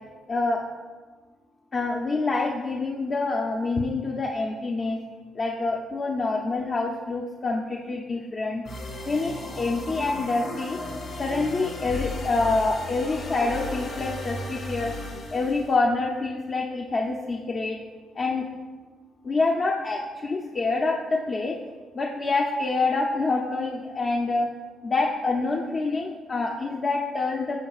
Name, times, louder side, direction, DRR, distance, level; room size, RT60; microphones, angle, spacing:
voice 1, 0.3-0.6 1.7-5.0 5.3-8.6 9.1-10.8 11.2-14.9 15.3-17.8 18.1-18.4 19.2-21.6 21.9-24.5 24.8-27.6, left 3 dB, 40° left, 0 dB, 0.7 m, -26 dB
sound 1, 8.6-15.8, left 2 dB, 75° left, 2.0 m, -35 dB
11.0 x 7.0 x 2.4 m, 1.4 s
cardioid pair, 90°, 0 cm